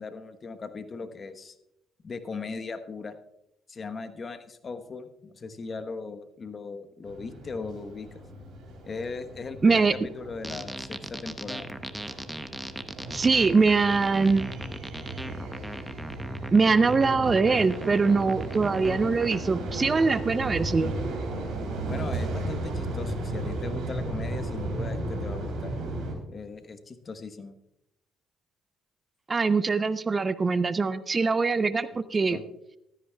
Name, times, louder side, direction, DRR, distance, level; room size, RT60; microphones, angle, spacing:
voice 1, 0.0-1.6 2.0-3.2 3.7-8.2 8.8-11.7 21.9-25.7 26.3-27.5 32.3-32.4, left 4 dB, 40° left, 9 dB, 1.1 m, -38 dB
sound 1, 7.0-26.1, right 2 dB, 65° right, 3.4 m, -35 dB
voice 2, 9.6-9.9 13.1-14.5 16.5-20.9 29.3-32.4, right 4 dB, 35° right, 14 dB, 0.6 m, -23 dB
sound 2, 10.4-19.4, right 1 dB, 10° right, 0.9 m, -39 dB
15.5 x 13.0 x 2.3 m, 0.84 s
hypercardioid pair, 60°, 0 cm